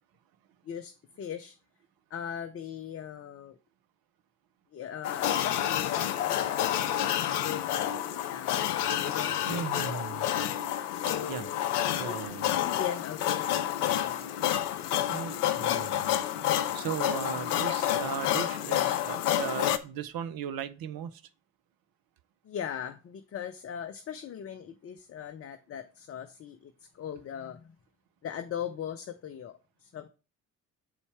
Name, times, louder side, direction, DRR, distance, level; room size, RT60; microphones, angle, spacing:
voice 1, 0.7-1.6 2.1-3.6 4.7-8.5 9.0-10.5 10.9-11.6 12.0-12.2 12.6-13.7 14.0-14.3 22.4-27.7 28.2-30.1, left 9 dB, 30° left, 0.6 m, -39 dB
sound 1, 5.0-19.8, left 11 dB, 80° left, 0.5 m, -29 dB
voice 2, 9.5-10.3 11.3-11.5 12.0-12.6 15.1-16.2 16.7-21.2, right 9 dB, 50° right, 0.7 m, -37 dB
7.6 x 4.1 x 3.4 m
figure-of-eight pair, 45°, 45 cm